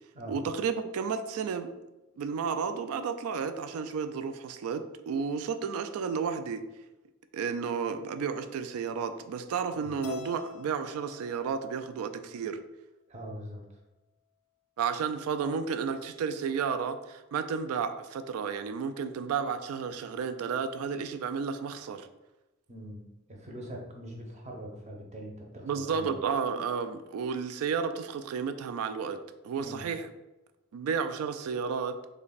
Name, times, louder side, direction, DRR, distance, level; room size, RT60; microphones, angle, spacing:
voice 1, 0.3-1.7 2.2-6.6 7.3-12.6 14.8-22.1 25.6-29.2 29.4-30.1 30.7-32.0, right 6 dB, 85° right, 9 dB, 0.3 m, -32 dB
Keyboard (musical), 10.0-12.4, left 9 dB, 80° left, 0.4 m, -46 dB
voice 2, 13.1-13.6 22.7-23.0 23.3-26.1 29.6-29.8, right 1 dB, 30° right, 0 dB, 0.6 m, -43 dB
3.3 x 2.2 x 3.9 m, 1.0 s
head